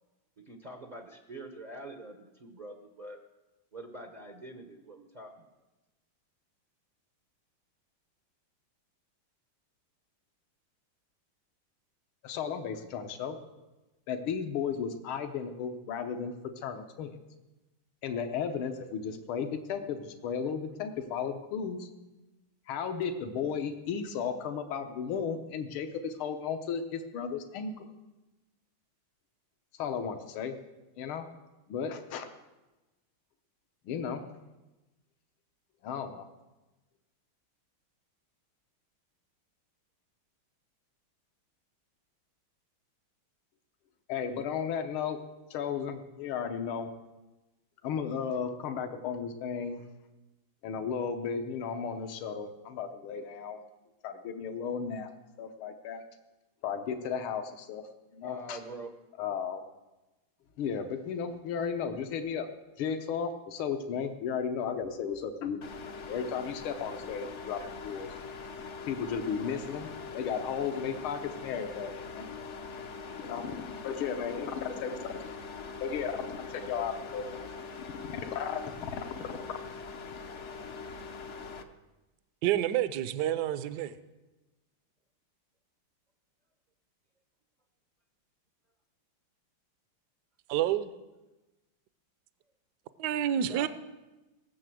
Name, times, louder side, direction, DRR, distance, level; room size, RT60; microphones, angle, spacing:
voice 1, 0.4-3.2 3.7-5.5 58.2-58.9 93.4-93.7, right 1 dB, 50° right, 4 dB, 0.5 m, -45 dB
voice 2, 12.2-13.4 14.1-16.3 16.6-17.1 18.0-21.9 22.7-27.9 29.8-30.6 31.0-31.3 31.7-32.3 33.9-34.3 35.8-36.3 44.1-45.2 45.5-46.9 47.8-49.8 50.6-53.6 54.0-55.1 55.4-56.0 56.6-58.6 59.2-59.6 60.6-62.5 62.8-65.6 66.1-68.1 68.9-72.3 73.2-75.3 75.8-77.4 78.2-78.6, left 6 dB, 80° left, 6 dB, 1.8 m, -34 dB
sound 1, 65.6-81.6, left 4 dB, 60° left, 0.7 m, -42 dB
voice 3, 82.4-83.9 90.5-90.9 93.0-93.7, right 11 dB, 65° right, 13 dB, 1.1 m, -28 dB
18.5 x 6.6 x 7.7 m, 1.1 s
omnidirectional pair, 2.3 m